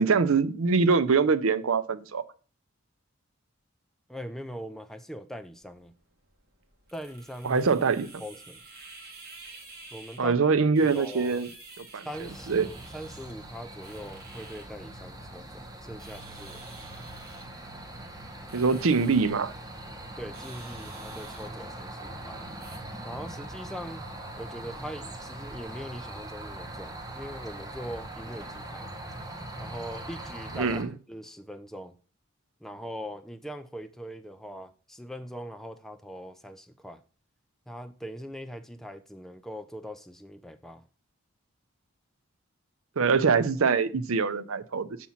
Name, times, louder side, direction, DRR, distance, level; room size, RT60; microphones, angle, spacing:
voice 1, 0.0-2.2 7.4-8.1 10.2-11.5 11.8-12.1 12.5-12.7 18.5-19.5 30.5-30.9 43.0-44.9, right 5 dB, 70° right, 0.6 m, -24 dB
voice 2, 4.1-5.9 6.9-7.7 8.2-8.6 9.9-10.4 10.8-11.5 12.0-16.7 20.2-22.5 23.0-24.1 24.4-28.9 29.6-30.8 31.1-32.0 32.6-37.0 37.7-40.8, equal, ahead, 0.4 m, -41 dB
sound 1, 5.6-22.8, right 3 dB, 45° right, 1.9 m, -51 dB
sound 2, 12.1-30.8, right 1 dB, 15° right, 1.1 m, -41 dB
7.2 x 4.4 x 5.6 m
head